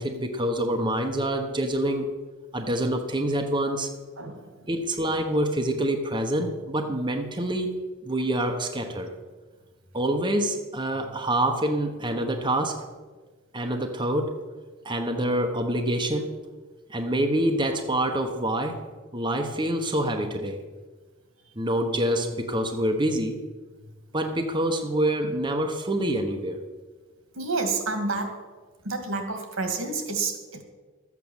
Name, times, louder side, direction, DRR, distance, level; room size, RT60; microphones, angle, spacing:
voice 1, 0.0-2.1 2.5-3.9 4.7-7.7 8.0-9.1 9.9-12.8 13.5-14.4 14.8-16.4 16.9-18.8 19.1-20.6 21.6-23.4 24.1-26.6, right 1 dB, 25° right, 3 dB, 1.0 m, -26 dB
voice 2, 4.2-4.7 27.3-28.4 28.8-30.6, right 3 dB, 85° right, 5 dB, 2.1 m, -29 dB
12.5 x 8.4 x 7.2 m, 1.3 s
head